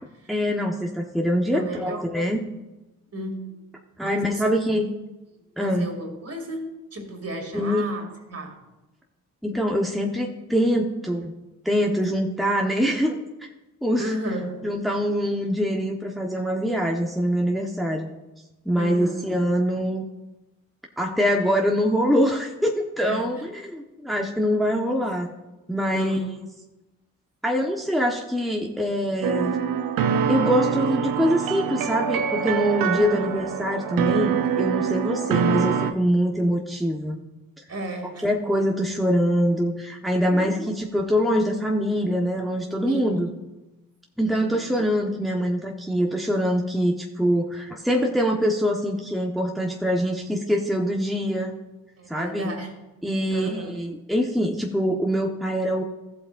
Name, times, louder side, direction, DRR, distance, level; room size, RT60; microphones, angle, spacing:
voice 1, 0.3-2.5 4.0-4.9 5.6-5.9 7.5-7.9 9.4-11.3 11.6-13.2 13.8-14.2 14.6-18.1 18.6-20.0 21.0-25.3 25.7-26.2 27.4-29.6 30.3-37.2 38.2-43.3 44.2-51.5 52.1-52.5 53.0-55.8, equal, ahead, 0 dB, 1.3 m, -24 dB
voice 2, 1.5-2.0 3.1-3.5 4.0-4.5 5.6-8.6 14.0-14.7 18.8-19.4 23.1-23.3 24.9-25.2 25.9-26.5 32.9-33.4 37.7-38.3 40.3-40.5 42.9-43.0 44.3-44.8 52.0-52.7 53.3-53.8, right 1 dB, 40° right, 2 dB, 2.9 m, -34 dB
sound 1, 29.2-35.9, right 7 dB, 65° right, 0.8 m, -25 dB
15.0 x 7.8 x 2.7 m, 1.0 s
hypercardioid pair, 50°, 37 cm